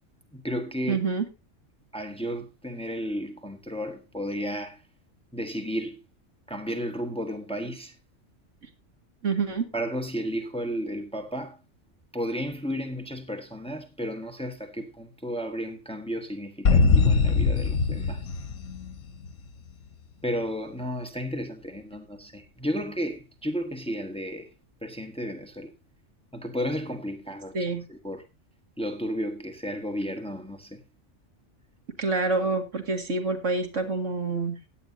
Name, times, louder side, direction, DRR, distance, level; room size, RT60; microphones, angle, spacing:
voice 1, 0.3-1.0 1.9-4.8 5.3-6.0 6.5-7.9 9.7-11.6 12.1-18.2 20.2-24.5 24.8-25.7 26.3-28.2 28.8-30.8, equal, 5° left, 1.4 m, -33 dB
voice 2, 0.9-1.3 9.2-9.7 27.5-27.8 32.0-34.6, right 3 dB, 75° right, 2.3 m, -27 dB
sound 1, 16.7-19.4, left 4 dB, 85° left, 1.4 m, -22 dB
16.5 x 9.7 x 2.7 m
omnidirectional pair, 1.3 m